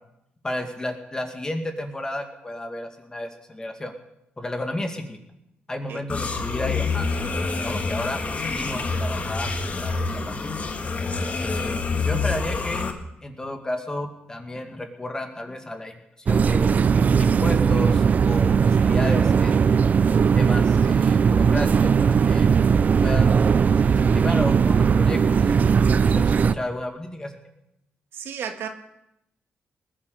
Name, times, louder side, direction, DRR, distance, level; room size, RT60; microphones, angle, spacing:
voice 1, 0.4-3.9 4.4-5.2 5.7-7.1 7.5-9.5 9.8-10.7 11.4-16.7 17.2-19.6 20.3-22.5 23.0-23.4 23.8-25.4 26.0-27.3, left 1 dB, 20° left, 5 dB, 2.2 m, -32 dB
sound 1, 6.1-12.9, left 4 dB, 40° left, 1.8 m, -27 dB
sound 2, 16.3-26.5, right 6 dB, 45° right, 0.5 m, -18 dB
voice 2, 28.1-28.7, right 8 dB, 85° right, 6 dB, 1.7 m, -32 dB
19.5 x 10.0 x 6.9 m, 0.83 s
cardioid pair, 110°, 4 cm